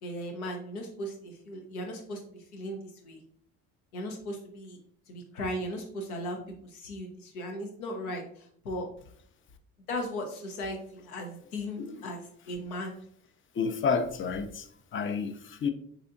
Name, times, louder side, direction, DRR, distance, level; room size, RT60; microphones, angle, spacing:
voice 1, 0.0-3.2 3.9-4.8 5.1-8.9 9.9-13.0, equal, 85° left, 0.7 m, -37 dB
voice 2, 13.6-15.7, left 5 dB, 30° left, 0.4 m, -30 dB
4.0 x 2.8 x 2.5 m
hypercardioid pair, 50°, 43 cm